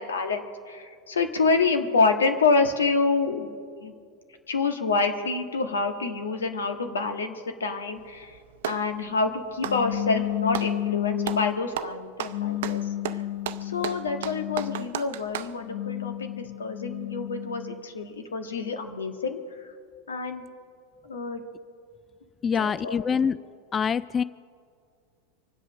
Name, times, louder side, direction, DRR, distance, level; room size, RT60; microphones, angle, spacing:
voice 1, 0.0-3.9 4.5-8.4 8.6-12.9 13.6-19.7 20.1-20.4 21.0-21.4 22.4-23.2, left 4 dB, 90° left, 6 dB, 1.5 m, -27 dB
Clapping, 8.0-8.9 9.5-10.8 11.2-11.5 11.8-15.6, right 11 dB, 70° right, 0.7 m, -34 dB
sound 1, 9.6-11.7 12.3-15.0 15.5-17.8, left 14 dB, 60° left, 0.6 m, -32 dB
voice 2, 22.4-23.4 23.7-24.2, left 6 dB, 25° left, 17 dB, 0.3 m, -25 dB
24.5 x 8.3 x 6.3 m, 2.2 s
hypercardioid pair, 95°, 0 cm